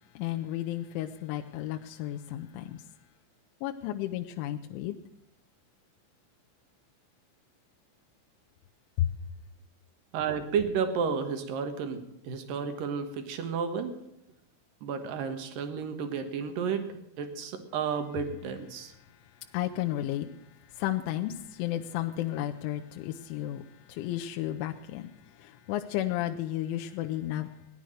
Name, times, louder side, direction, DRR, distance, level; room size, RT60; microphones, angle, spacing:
voice 1, 0.2-2.8 3.6-5.0 9.0-9.2 19.5-20.3 20.5-27.5, left 13 dB, 80° left, 2.9 m, -33 dB
voice 2, 10.1-13.9 14.8-18.9, right 6 dB, 70° right, 2.2 m, -32 dB
17.0 x 10.5 x 6.5 m
omnidirectional pair, 5.9 m